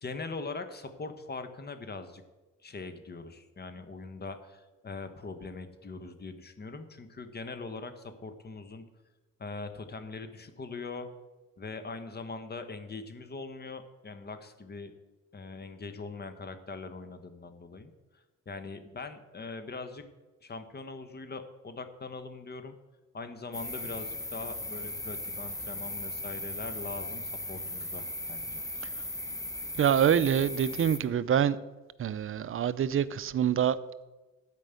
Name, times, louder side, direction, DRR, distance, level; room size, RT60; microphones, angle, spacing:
voice 1, 0.0-2.2 2.6-8.8 9.4-11.1 11.6-14.9 15.3-20.0 20.4-22.8 23.1-28.6, left 3 dB, 35° left, 1.3 m, -41 dB
sound 1, 23.5-31.0, left 1 dB, 10° left, 1.2 m, -37 dB
voice 2, 29.7-31.6 32.0-33.8, right 9 dB, 45° right, 0.6 m, -26 dB
12.5 x 5.2 x 8.3 m
cardioid pair, 90°, 30 cm